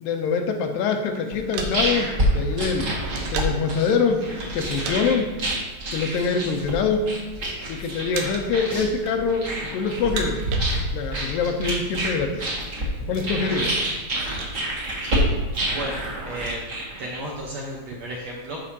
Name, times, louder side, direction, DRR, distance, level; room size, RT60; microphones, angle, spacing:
voice 1, 0.0-3.0 3.3-4.3 4.5-5.4 5.9-7.1 7.7-10.4 10.9-12.5 13.1-13.8, left 5 dB, 80° left, 4 dB, 2.3 m, -24 dB
sound 1, 1.1-3.7 4.4-5.0 5.3-5.5 6.2-6.9 7.2-7.7 8.1-8.6 8.9-9.6 9.9-11.2 11.5-11.6 11.8-12.1 12.6-14.6, right 5 dB, 85° right, 2.8 m, -36 dB
sound 2, 1.3-17.4, right 1 dB, 40° right, 1.8 m, -28 dB
voice 2, 15.7-18.6, right 1 dB, 65° right, -3 dB, 1.7 m, -33 dB
13.5 x 5.5 x 2.8 m, 1.3 s
omnidirectional pair, 4.2 m